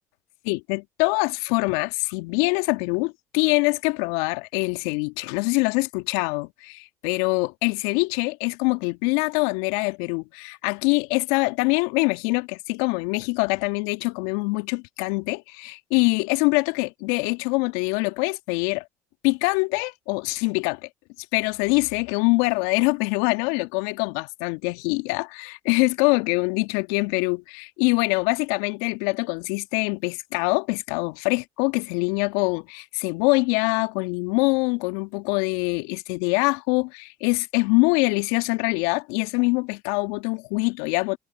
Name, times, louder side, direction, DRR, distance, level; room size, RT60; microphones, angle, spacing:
voice 1, 0.4-18.8 19.2-20.8 21.3-41.2, left 29 dB, 75° left, 2.0 m, -24 dB
hypercardioid pair, 55°, 9 cm